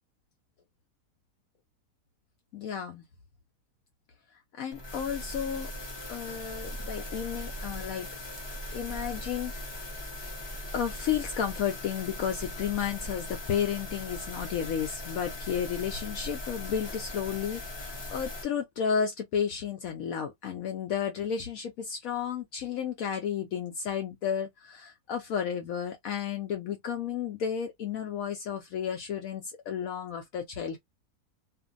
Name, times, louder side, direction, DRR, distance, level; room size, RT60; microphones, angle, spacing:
voice 1, 2.5-3.0 4.6-5.7 6.1-8.1 8.7-9.5 10.7-30.8, left 8 dB, 70° left, 0.9 m, -32 dB
sound 1, 4.7-18.4, left 1 dB, 25° left, 0.5 m, -39 dB
2.6 x 2.6 x 2.4 m
omnidirectional pair, 1.7 m